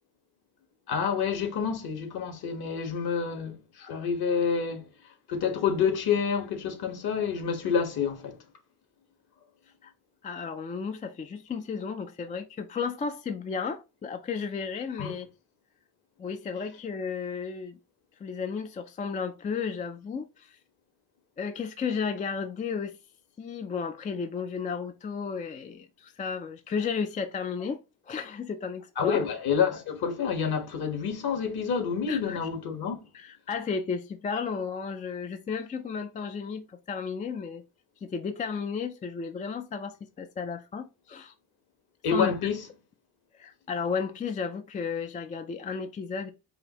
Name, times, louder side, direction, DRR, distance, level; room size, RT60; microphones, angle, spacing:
voice 1, 0.9-4.8 5.3-8.4 15.0-15.1 29.0-33.0 42.0-42.6, left 6 dB, 55° left, 1.3 m, -28 dB
voice 2, 10.2-15.3 16.2-17.8 18.2-20.6 21.4-23.0 23.4-29.2 32.1-32.5 33.1-37.6 38.0-41.3 42.1-42.4 43.4-46.3, left 5 dB, 20° left, 0.3 m, -33 dB
4.9 x 2.6 x 2.9 m
cardioid pair, 90°, 44 cm